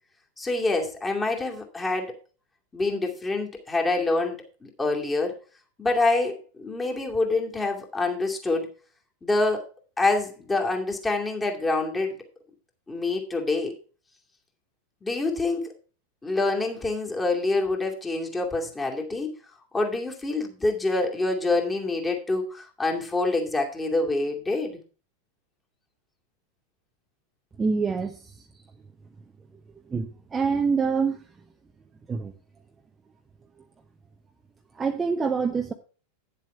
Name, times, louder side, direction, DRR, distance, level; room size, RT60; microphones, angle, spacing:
voice 1, 0.4-2.2 2.7-5.4 5.8-8.7 9.2-9.6 10.0-12.1 12.9-13.8 15.0-15.7 16.2-19.3 19.7-24.8, left 2 dB, 15° left, 2.5 m, -26 dB
voice 2, 27.6-28.1 29.9-30.1 30.3-31.2 32.1-32.3 34.8-35.7, right 5 dB, 15° right, 0.8 m, -25 dB
10.0 x 7.4 x 4.6 m
figure-of-eight pair, 90°, 0 cm